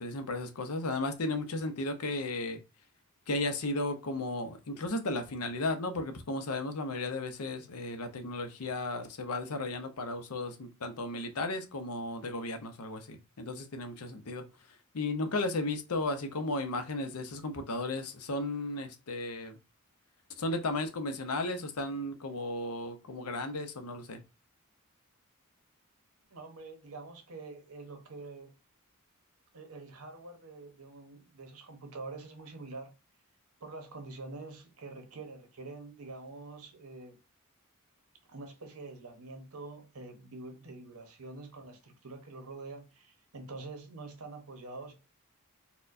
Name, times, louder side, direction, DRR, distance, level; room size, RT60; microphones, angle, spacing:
voice 1, 0.0-2.6 3.3-14.4 14.9-19.6 20.4-24.2, left 2 dB, 90° left, 0.7 m, -34 dB
voice 2, 26.3-28.5 29.5-32.9 33.6-37.2 38.3-44.9, right 3 dB, 80° right, 1.0 m, -46 dB
4.2 x 2.2 x 2.6 m
head